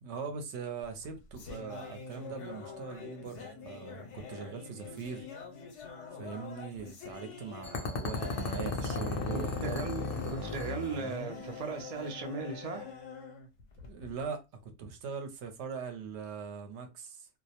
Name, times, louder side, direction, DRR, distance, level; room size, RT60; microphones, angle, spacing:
voice 1, 0.0-5.3 6.2-9.8 13.8-17.3, right 6 dB, 70° right, 0.8 m, -41 dB
sound 1, 0.8-14.3, left 5 dB, 80° left, 0.9 m, -46 dB
sound 2, 7.6-11.5, left 3 dB, 60° left, 0.7 m, -35 dB
voice 2, 9.2-12.9, right 4 dB, 55° right, 0.4 m, -37 dB
2.2 x 2.0 x 2.8 m
omnidirectional pair, 1.2 m